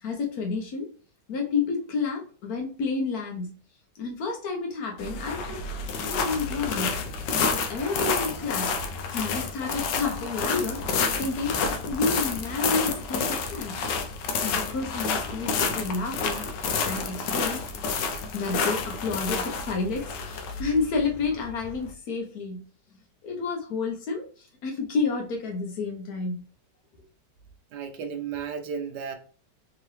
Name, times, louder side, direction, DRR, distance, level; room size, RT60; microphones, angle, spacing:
voice 1, 0.0-0.9 1.3-3.6 4.0-5.6 6.0-7.0 7.5-8.8 9.1-13.8 14.4-17.6 18.3-22.7 23.2-26.4 26.9-27.0, left 4 dB, 65° left, 1.1 m, -30 dB
sound 1, 5.0-21.9, left 5 dB, 80° left, 1.3 m, -29 dB
voice 2, 27.7-29.1, right 6 dB, 75° right, 1.2 m, -33 dB
3.6 x 2.9 x 3.2 m
omnidirectional pair, 1.9 m